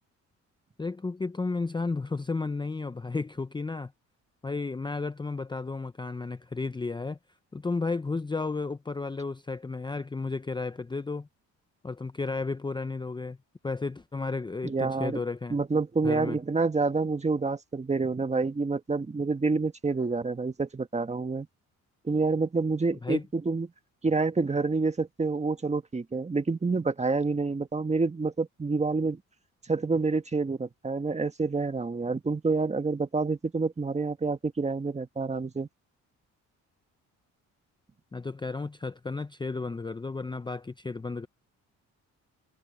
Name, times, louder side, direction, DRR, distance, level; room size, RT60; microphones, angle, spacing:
voice 1, 0.8-3.9 4.4-7.2 7.5-11.3 11.8-13.4 13.6-15.6 16.0-16.4 23.0-23.2 38.1-41.3, left 3 dB, 15° left, 0.7 m, -33 dB
voice 2, 14.6-15.2 15.5-21.5 22.0-23.7 24.0-29.2 29.7-35.7, right 3 dB, 20° right, 1.6 m, -28 dB
cardioid pair, 90°, 30 cm